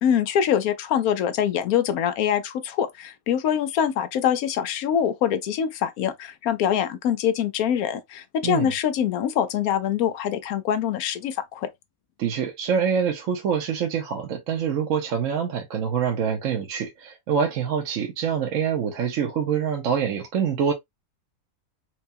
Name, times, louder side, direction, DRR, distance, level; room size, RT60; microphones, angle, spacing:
voice 1, 0.0-11.7, left 9 dB, 85° left, 1.1 m, -24 dB
voice 2, 12.2-20.7, right 7 dB, 70° right, 1.0 m, -25 dB
4.4 x 2.3 x 2.6 m
omnidirectional pair, 1.5 m